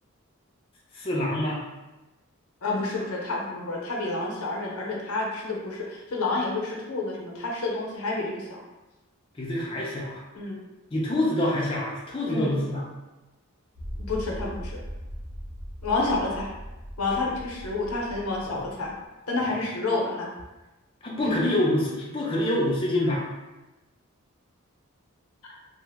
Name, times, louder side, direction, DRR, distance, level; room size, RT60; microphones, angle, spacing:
voice 1, 0.9-1.6 9.3-10.2 10.9-12.8 18.5-18.6 21.0-23.2, left 1 dB, 25° left, -5 dB, 0.4 m, -26 dB
voice 2, 2.6-8.6 10.3-10.7 12.3-12.5 14.0-14.8 15.8-16.5 17.0-18.9 19.3-20.3 21.2-21.4 25.4-25.5, left 2 dB, 85° left, -2 dB, 0.7 m, -29 dB
sound 1, 13.8-19.0, equal, 85° right, 1.0 m, -39 dB
2.9 x 2.0 x 3.4 m, 1.1 s
head